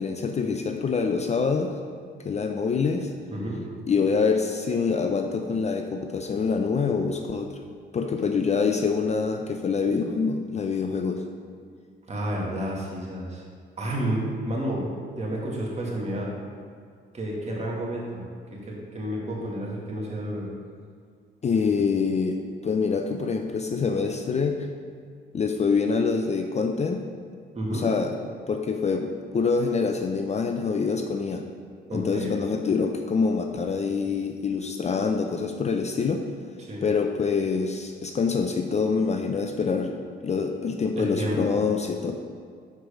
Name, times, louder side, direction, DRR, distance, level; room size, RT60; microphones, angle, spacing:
voice 1, 0.0-1.8 2.2-3.1 3.9-7.6 7.9-11.2 21.4-24.6 25.3-27.0 27.7-28.1 28.5-31.5 31.9-36.2 36.8-39.9 40.2-42.1, left 5 dB, 35° left, 4 dB, 0.5 m, -25 dB
voice 2, 3.3-3.6 12.1-13.4 13.8-14.8 15.2-16.3 17.1-18.2 18.5-20.5 27.5-27.9 31.9-32.3 36.6-36.8 41.0-41.6, right 1 dB, 35° right, -4 dB, 1.9 m, -30 dB
6.7 x 4.7 x 5.1 m, 2.1 s
cardioid pair, 90°, 20 cm